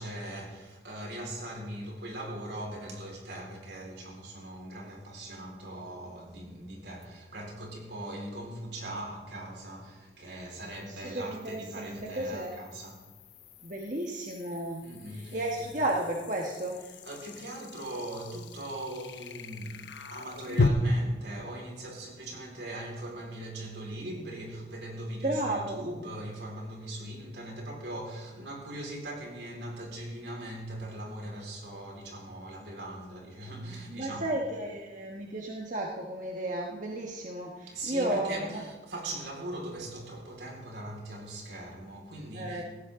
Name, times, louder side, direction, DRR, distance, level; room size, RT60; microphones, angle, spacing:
voice 1, 0.0-13.1 14.8-15.7 16.9-34.4 37.7-42.6, right 1 dB, 70° right, -1 dB, 4.4 m, -40 dB
sound 1, 7.0-7.1 10.5-20.7, left 3 dB, 90° left, 0.9 m, -37 dB
voice 2, 10.9-12.6 13.6-14.8 15.1-16.8 25.2-25.8 33.9-38.6 42.3-42.6, right 1 dB, 45° right, -1 dB, 1.4 m, -33 dB
17.0 x 15.5 x 3.7 m, 1.2 s
head